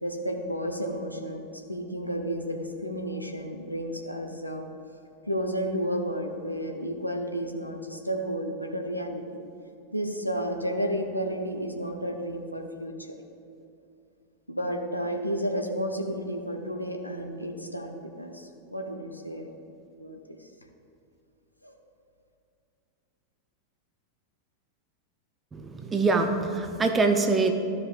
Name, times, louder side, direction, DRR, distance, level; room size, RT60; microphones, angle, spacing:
voice 1, 0.0-4.7 5.3-9.4 9.9-13.2 14.5-19.5 20.0-20.5 21.6-21.7, equal, 90° left, 2 dB, 0.7 m, -32 dB
voice 2, 25.5-27.5, right 3 dB, 15° right, 5 dB, 0.7 m, -24 dB
13.5 x 5.0 x 2.4 m, 2.6 s
figure-of-eight pair, 90°, 0 cm